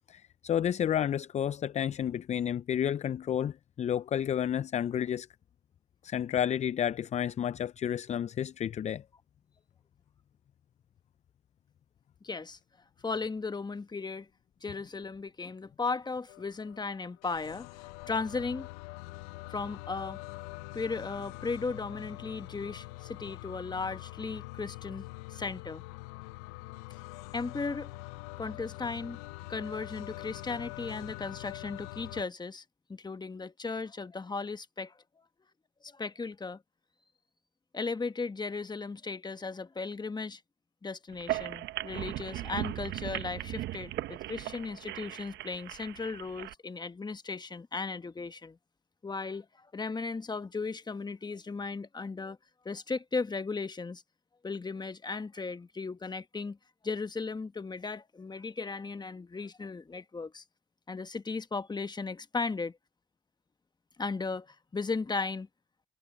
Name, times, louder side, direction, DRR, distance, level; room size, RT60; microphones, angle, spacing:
voice 1, 0.1-5.3 6.0-9.0, left 9 dB, 40° left, 0.4 m, -31 dB
voice 2, 12.2-12.6 13.0-14.3 14.6-17.7 18.1-18.7 19.5-20.2 20.7-25.8 27.3-27.9 28.4-29.2 29.5-32.6 32.9-34.9 35.8-36.6 37.7-40.4 40.8-48.6 49.0-52.4 52.6-54.0 54.4-56.6 56.8-60.4 60.9-62.8 64.0-65.5, left 4 dB, 20° left, 1.3 m, -36 dB
sound 1, 16.3-32.2, left 23 dB, 85° left, 0.6 m, -44 dB
sound 2, 41.1-46.5, right 15 dB, 65° right, 1.0 m, -38 dB
hypercardioid pair, 65°, 19 cm